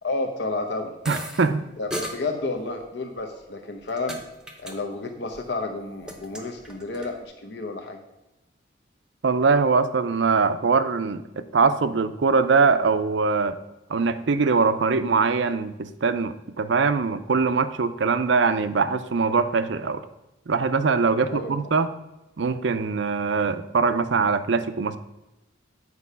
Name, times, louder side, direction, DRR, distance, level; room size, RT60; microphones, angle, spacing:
voice 1, 0.0-1.0 1.8-4.2 4.6-8.0 21.3-21.5, left 2 dB, 60° left, 3 dB, 0.8 m, -31 dB
sound 1, 1.1-1.5 1.9-2.2 3.2-4.2 4.5-4.8 5.0-5.5 5.8-7.1, equal, 5° right, 0.8 m, -35 dB
voice 2, 1.1-1.6 9.2-13.6 13.9-20.0 20.5-21.9 22.4-25.0, right 4 dB, 65° right, 12 dB, 0.5 m, -22 dB
8.4 x 4.8 x 5.5 m, 0.95 s
head